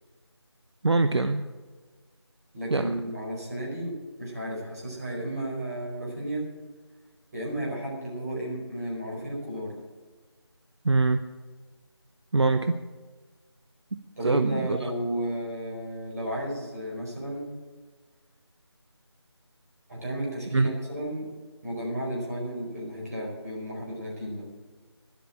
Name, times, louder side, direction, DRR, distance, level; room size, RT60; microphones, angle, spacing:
voice 1, 0.8-1.4 2.7-2.9 10.8-11.2 12.3-12.8 14.2-14.8 20.5-20.7, right 3 dB, 70° right, 9 dB, 0.7 m, -23 dB
voice 2, 2.5-6.4 7.3-9.7 14.2-17.5 19.9-21.3 21.6-24.5, right 1 dB, 35° right, -4 dB, 4.9 m, -33 dB
11.5 x 8.2 x 8.9 m, 1.4 s
figure-of-eight pair, 170°, 14 cm